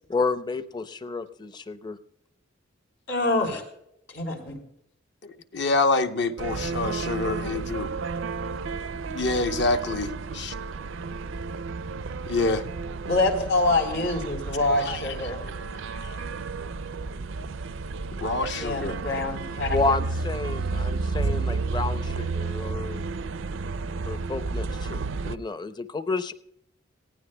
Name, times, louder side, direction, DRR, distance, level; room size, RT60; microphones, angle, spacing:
voice 1, 0.1-2.0 19.7-23.0 24.1-26.3, left 3 dB, 20° left, 12 dB, 0.6 m, -30 dB
voice 2, 3.1-3.6 4.1-4.6 13.1-15.4 18.5-20.0, left 2 dB, 90° left, 2 dB, 3.9 m, -26 dB
voice 3, 5.2-7.9 9.1-10.5 12.3-12.6 14.9-15.0 18.2-19.0, left 3 dB, 60° left, 7 dB, 0.9 m, -26 dB
sound 1, 6.4-25.4, right 4 dB, 70° right, 0.5 m, -32 dB
19.0 x 16.0 x 2.2 m, 0.74 s
head